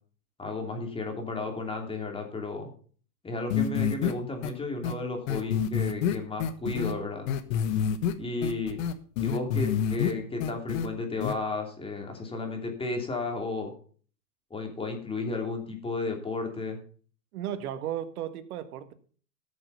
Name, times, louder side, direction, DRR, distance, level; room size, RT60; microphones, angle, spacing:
voice 1, 0.4-2.7 3.2-7.3 8.2-8.8 9.2-13.7 14.5-16.8, left 3 dB, 10° left, 2 dB, 2.9 m, -33 dB
sound 1, 3.5-4.1 4.4-4.5 4.8-4.9 5.3-6.9 7.3-8.1 8.4-10.1 10.4-10.9 11.2-11.3, left 8 dB, 55° left, 1.4 m, -27 dB
voice 2, 17.3-18.9, right 10 dB, 65° right, 11 dB, 1.7 m, -35 dB
13.5 x 7.0 x 5.5 m, 0.43 s
hypercardioid pair, 115°, 48 cm